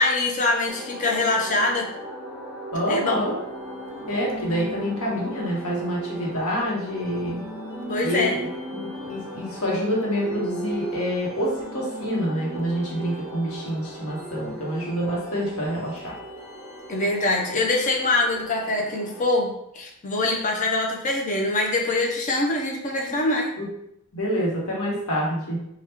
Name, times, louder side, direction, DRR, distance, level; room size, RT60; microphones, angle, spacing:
voice 1, 0.0-1.9 2.9-3.3 7.9-8.3 16.9-23.5, left 2 dB, 35° left, 0 dB, 0.6 m, -24 dB
sound 1, 0.7-19.2, right 1 dB, 5° right, 0.7 m, -40 dB
voice 2, 2.7-3.4 4.1-7.4 8.0-8.4 8.7-16.0 23.2-23.7 24.1-25.6, equal, 75° left, -4 dB, 1.1 m, -27 dB
sound 2, 3.3-18.4, right 2 dB, 40° right, 0.4 m, -39 dB
2.9 x 2.3 x 3.5 m, 0.79 s
head